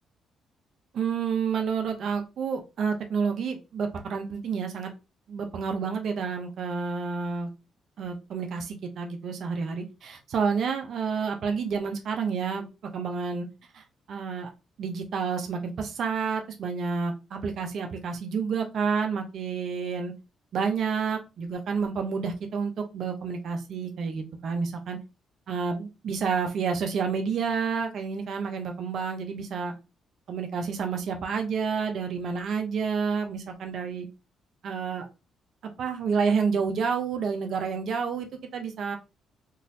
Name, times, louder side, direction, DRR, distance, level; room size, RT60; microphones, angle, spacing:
voice 1, 0.9-4.9 5.3-7.5 8.0-12.7 12.9-13.5 13.7-14.5 14.8-20.1 20.5-25.0 25.5-29.7 30.3-34.1 34.6-35.1 35.8-38.3 38.5-39.0, right 5 dB, 65° right, 4 dB, 0.7 m, -29 dB
3.9 x 2.6 x 2.6 m, 0.27 s
cardioid pair, 90°, 0 cm